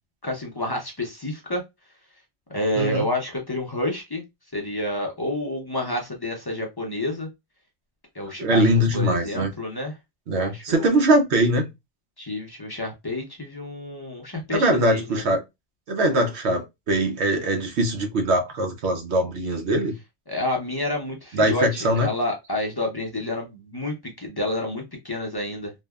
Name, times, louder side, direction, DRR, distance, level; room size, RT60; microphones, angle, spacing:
voice 1, 0.2-1.6 2.5-4.2 4.5-7.3 8.1-9.9 10.3-10.9 12.2-15.2 20.3-25.7, left 1 dB, 25° left, 0.6 m, -29 dB
voice 2, 2.8-3.1 8.4-9.5 10.3-11.7 14.5-15.4 15.9-19.9 21.3-22.1, right 1 dB, 80° right, 1.1 m, -22 dB
3.2 x 2.1 x 2.2 m
omnidirectional pair, 1.1 m